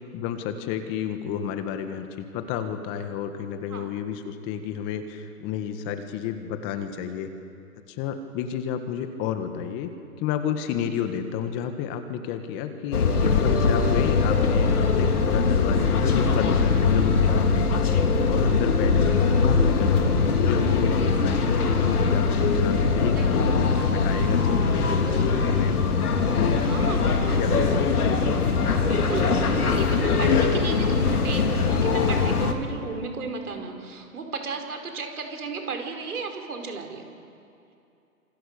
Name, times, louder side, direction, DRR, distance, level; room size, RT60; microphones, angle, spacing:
voice 1, 0.1-7.3 7.9-9.9 10.2-17.8 18.3-20.0 20.4-25.0 25.2-25.8 26.3-26.6 27.4-28.2, left 8 dB, 25° left, 8 dB, 1.8 m, -31 dB
sound 1, 12.9-32.5, left 4 dB, 75° left, 3.2 m, -22 dB
voice 2, 23.1-23.5 26.6-27.5 28.8-37.0, right 4 dB, 75° right, 4 dB, 4.9 m, -34 dB
27.5 x 25.5 x 6.8 m, 2.6 s
hypercardioid pair, 135°, 45 cm